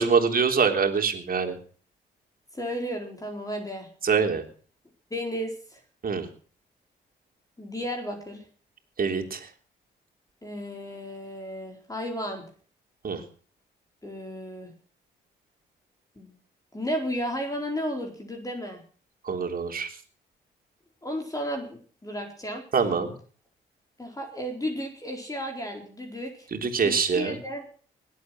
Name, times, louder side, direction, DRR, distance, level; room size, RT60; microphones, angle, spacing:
voice 1, 0.0-1.6 4.0-4.4 6.0-6.3 9.0-9.5 13.0-13.2 19.3-19.9 22.7-23.1 26.5-27.4, right 5 dB, 50° right, 4 dB, 3.5 m, -24 dB
voice 2, 2.5-3.9 5.1-5.8 7.6-8.4 10.4-12.4 14.0-14.7 16.2-16.3 16.7-18.8 21.0-22.6 24.0-26.5 26.8-27.6, equal, 20° left, 2 dB, 4.4 m, -33 dB
20.5 x 8.5 x 6.2 m, 0.42 s
supercardioid pair, 60°, 19 cm